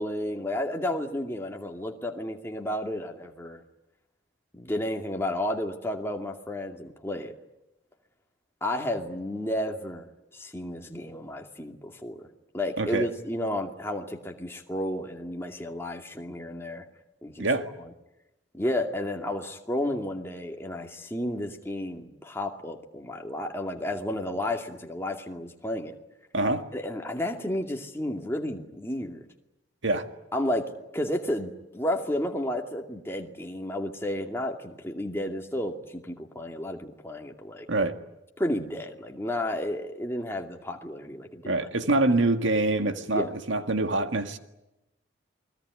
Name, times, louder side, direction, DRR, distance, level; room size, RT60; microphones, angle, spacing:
voice 1, 0.0-3.6 4.5-7.3 8.6-10.1 10.3-12.3 12.5-16.8 17.2-17.5 17.8-17.9 18.5-26.0 26.7-29.2 30.3-37.7 38.4-41.7 43.1-43.3, left 1 dB, 10° left, 2.4 m, -32 dB
voice 2, 12.8-13.1 17.4-17.7 26.3-26.6 29.8-30.1 37.7-37.9 41.5-44.4, right 2 dB, 70° right, 1.9 m, -25 dB
29.0 x 21.0 x 9.7 m
head